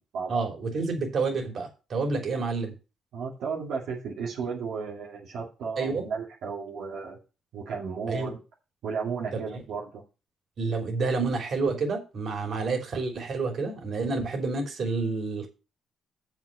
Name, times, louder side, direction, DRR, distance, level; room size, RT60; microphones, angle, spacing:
voice 1, 0.3-2.7 5.8-6.0 8.1-8.3 9.3-9.4 10.6-15.5, right 4 dB, 55° right, 2 dB, 3.2 m, -29 dB
voice 2, 3.1-7.2 7.5-8.4 8.8-10.0, right 5 dB, 75° right, -4 dB, 2.4 m, -34 dB
7.2 x 5.9 x 6.7 m, 0.31 s
cardioid pair, 90°, 0 cm